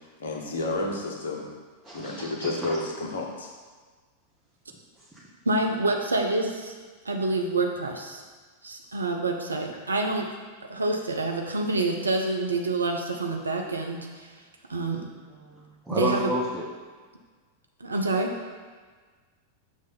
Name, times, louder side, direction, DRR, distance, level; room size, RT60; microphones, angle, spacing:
voice 1, 0.2-1.4 1.9-3.5, left 2 dB, 60° left, 0 dB, 1.1 m, -31 dB
voice 2, 1.8-2.8 15.3-16.6, right 1 dB, 10° right, -7 dB, 0.9 m, -31 dB
voice 3, 5.5-6.7 7.0-8.2 8.6-10.3 10.7-14.3 14.7-15.1 15.9-16.3 17.8-18.3, right 2 dB, 75° right, 2 dB, 0.6 m, -27 dB
6.2 x 3.2 x 5.3 m, 1.5 s
figure-of-eight pair, 90°, 0 cm